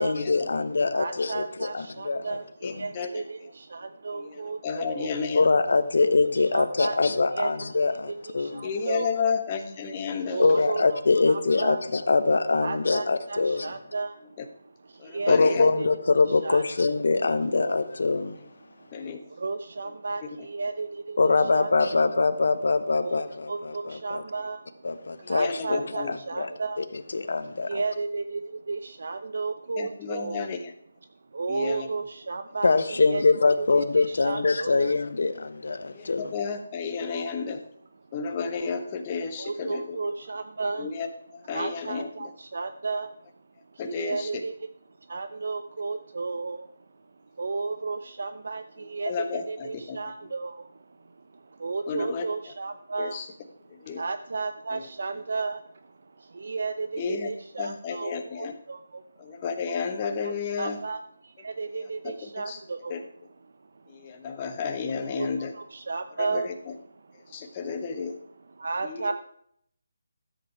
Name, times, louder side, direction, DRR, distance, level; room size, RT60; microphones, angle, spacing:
voice 1, 0.0-2.7 5.3-8.7 10.4-13.7 15.3-18.4 21.2-24.2 24.8-26.5 27.1-27.8 32.6-36.4, left 3 dB, 65° left, 9 dB, 1.2 m, -24 dB
voice 2, 0.9-5.4 6.3-7.0 7.3-7.5 7.9-9.4 9.8-11.8 12.6-15.9 16.3-16.9 17.6-17.8 18.6-21.8 23.0-27.1 27.7-30.5 31.3-33.7 34.0-34.9 35.8-36.1 37.0-38.4 38.6-38.8 39.2-43.3 43.7-59.4 60.0-64.6 65.0-69.1, right 3 dB, 65° right, 10 dB, 0.7 m, -34 dB
voice 3, 2.6-3.1 4.2-4.3 4.6-5.4 8.6-10.4 15.0-15.7 18.9-19.2 25.4-26.1 29.8-30.6 31.5-31.9 35.9-37.6 38.1-39.8 40.8-41.1 41.5-42.1 43.8-44.3 49.1-50.0 51.9-52.2 53.0-53.2 53.9-54.0 57.0-57.3 57.6-58.5 59.2-60.8 62.5-62.6 62.9-63.0 64.0-65.5 66.3-66.4 67.3-68.1 68.9-69.0, left 5 dB, 25° left, 5 dB, 1.2 m, -31 dB
13.0 x 8.0 x 4.7 m, 0.67 s
hypercardioid pair, 165°, 0 cm